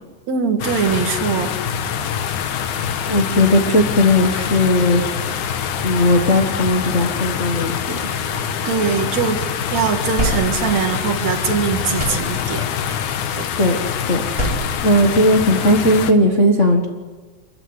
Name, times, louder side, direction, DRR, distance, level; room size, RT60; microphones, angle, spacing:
voice 1, 0.3-1.6 8.6-13.0 13.3-13.5, right 6 dB, 65° right, 5 dB, 3.0 m, -22 dB
sound 1, 0.6-16.1, left 8 dB, 80° left, 2.6 m, -25 dB
voice 2, 3.1-5.0 5.8-8.1 13.6-13.8 14.1-16.9, left 1 dB, 30° left, 1 dB, 1.5 m, -17 dB
sound 2, 7.8-9.3 9.7-11.5 11.8-12.8 14.1-15.8, right 1 dB, 25° right, 5.4 m, -29 dB
26.5 x 14.5 x 9.8 m, 1.3 s
omnidirectional pair, 3.4 m